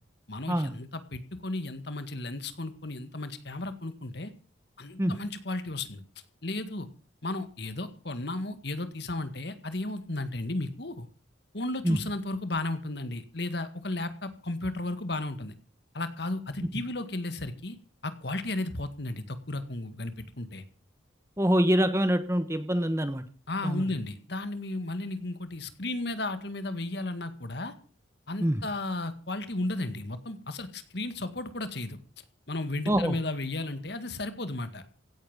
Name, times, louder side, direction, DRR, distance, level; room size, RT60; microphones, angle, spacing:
voice 1, 0.3-4.3 4.8-6.0 6.4-6.9 7.2-11.1 11.5-15.6 15.9-17.8 18.0-20.6 23.5-27.7 28.3-32.0 32.5-34.8, left 2 dB, 55° left, 11 dB, 1.9 m, -34 dB
voice 2, 21.4-23.2 23.6-23.8 28.4-28.6 32.9-33.2, equal, 15° right, 10 dB, 1.2 m, -25 dB
16.5 x 8.9 x 7.3 m, 0.39 s
head